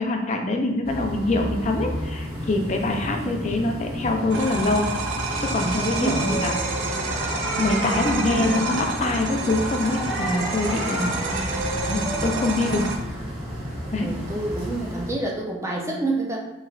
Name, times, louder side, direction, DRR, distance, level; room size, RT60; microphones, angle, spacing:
voice 1, 0.0-4.8 5.4-6.5 7.6-11.2 11.8-12.9 13.9-14.1, left 2 dB, 35° left, 3 dB, 0.5 m, -24 dB
sound 1, 0.8-15.1, equal, 30° right, 1.3 m, -32 dB
voice 2, 2.9-3.5 5.9-6.5 8.2-8.5 14.0-16.4, right 2 dB, 15° right, -2 dB, 0.5 m, -29 dB
sound 2, 4.3-13.0, right 3 dB, 75° right, 0.6 m, -30 dB
sound 3, 5.6-12.7, right 1 dB, 5° left, 0.8 m, -32 dB
4.9 x 3.1 x 2.4 m, 1.0 s
head